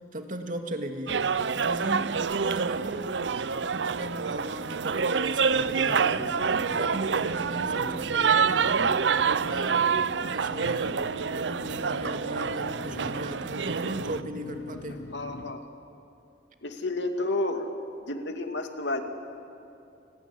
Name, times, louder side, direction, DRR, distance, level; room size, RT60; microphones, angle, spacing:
voice 1, 0.1-1.2 1.5-3.2 3.6-11.0 11.3-15.1, right 1 dB, 50° right, 5 dB, 2.3 m, -37 dB
sound 1, 1.1-14.2, right 6 dB, 85° right, 0.6 m, -27 dB
sound 2, 5.5-15.5, left 2 dB, 70° left, 1.0 m, -43 dB
voice 2, 15.1-15.6 16.6-17.7 18.1-19.0, left 2 dB, 90° left, 5 dB, 2.4 m, -30 dB
29.0 x 19.5 x 10.0 m, 2.6 s
head